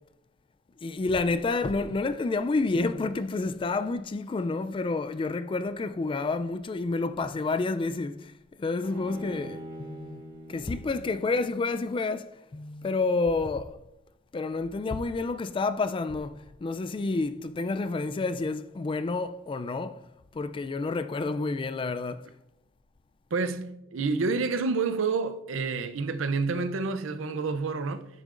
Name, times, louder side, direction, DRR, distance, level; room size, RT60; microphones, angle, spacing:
voice 1, 0.8-8.3 8.6-10.2 10.5-13.8 14.3-20.0 20.3-22.3, left 3 dB, 25° left, 0.3 m, -29 dB
Bowed string instrument, 8.8-12.1, equal, 45° right, 2.6 m, -44 dB
voice 2, 23.3-28.1, right 4 dB, 80° right, 0.5 m, -28 dB
10.0 x 6.6 x 2.5 m
head